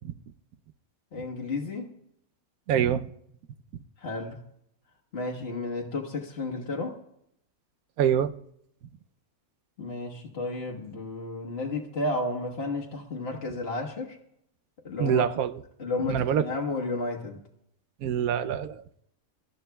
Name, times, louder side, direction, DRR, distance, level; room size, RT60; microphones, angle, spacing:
voice 1, 1.1-1.9 4.0-4.5 5.1-7.0 9.8-14.2 14.8-15.2 15.8-17.4, left 2 dB, 45° left, 1.4 m, -32 dB
voice 2, 2.7-3.1 8.0-8.3 15.0-15.5 16.1-16.4 18.0-18.8, right 9 dB, 80° right, 1.1 m, -25 dB
25.5 x 13.0 x 2.3 m
omnidirectional pair, 1.5 m